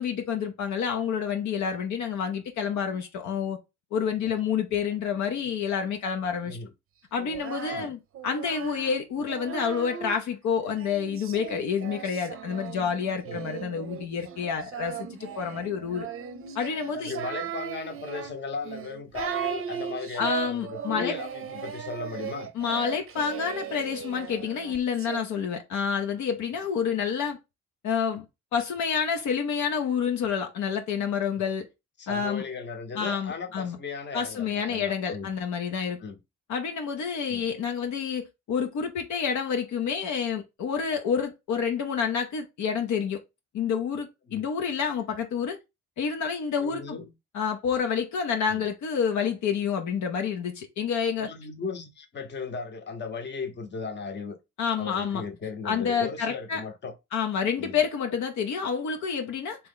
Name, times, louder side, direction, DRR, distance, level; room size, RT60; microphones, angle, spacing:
voice 1, 0.0-3.6 3.9-6.6 7.1-16.1 16.5-17.1 20.2-21.1 22.5-27.4 27.8-28.2 28.5-31.7 32.1-32.4 33.0-33.8 34.1-36.0 36.5-43.2 43.5-45.6 46.0-47.0 47.3-51.3 54.6-55.2 55.6-56.6 57.1-59.6, left 7 dB, 70° left, 0.7 m, -28 dB
Singing, 7.2-10.2 10.7-25.2, right 8 dB, 45° right, 0.6 m, -37 dB
voice 2, 16.9-22.5 31.3-31.4 32.0-35.3 36.0-36.2 37.3-37.5 44.3-44.5 46.6-47.1 48.5-48.7 51.2-54.4 54.8-56.9 57.6-57.8, left 4 dB, 35° left, 0.9 m, -37 dB
3.1 x 2.8 x 3.7 m
cardioid pair, 90°, 30 cm